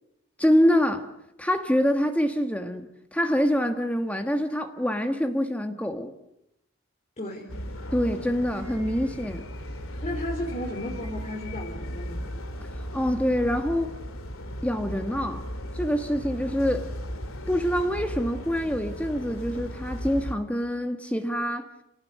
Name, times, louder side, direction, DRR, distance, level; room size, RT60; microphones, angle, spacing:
voice 1, 0.4-1.1 1.4-6.1 7.9-9.4 12.9-13.9 14.6-15.5 15.7-16.9 17.5-21.7, equal, 5° left, 6 dB, 1.5 m, -25 dB
voice 2, 7.2-7.5 10.0-12.3, left 1 dB, 30° left, 0 dB, 3.7 m, -34 dB
sound 1, 7.5-20.3, equal, 65° left, 2.9 m, -36 dB
29.0 x 18.5 x 9.4 m, 0.84 s
head